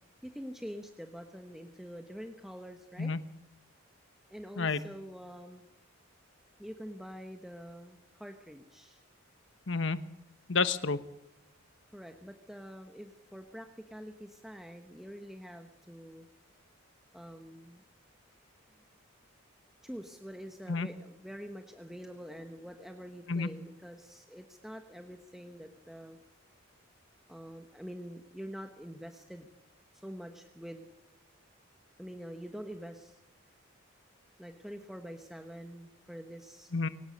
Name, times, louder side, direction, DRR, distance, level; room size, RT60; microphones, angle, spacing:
voice 1, 0.2-3.1 4.3-5.7 6.6-9.0 11.9-16.3 17.1-17.8 19.8-26.2 27.3-29.5 29.9-30.9 32.0-33.2 34.4-36.7, equal, ahead, 5 dB, 1.2 m, -46 dB
voice 2, 4.6-4.9 9.7-10.0 10.5-11.0 20.7-20.9 23.3-23.5 36.7-36.9, left 4 dB, 60° left, 13 dB, 1.1 m, -30 dB
22.5 x 18.5 x 6.6 m, 0.83 s
head